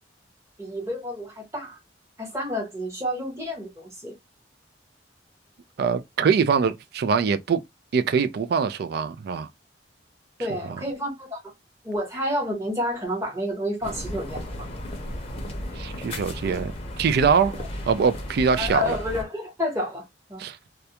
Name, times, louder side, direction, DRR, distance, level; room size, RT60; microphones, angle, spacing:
voice 1, 0.6-1.8 2.2-4.1 10.4-11.5 11.8-14.5 17.5-17.7 18.6-20.0 20.3-20.4, left 1 dB, 15° right, 1.0 m, -29 dB
voice 2, 5.8-7.6 7.9-9.5 15.8-16.7 17.0-17.5 17.9-19.0 20.4-20.6, right 6 dB, 55° right, 0.3 m, -23 dB
sound 1, 13.8-19.2, left 1 dB, 30° left, 0.6 m, -34 dB
2.3 x 2.1 x 2.7 m
head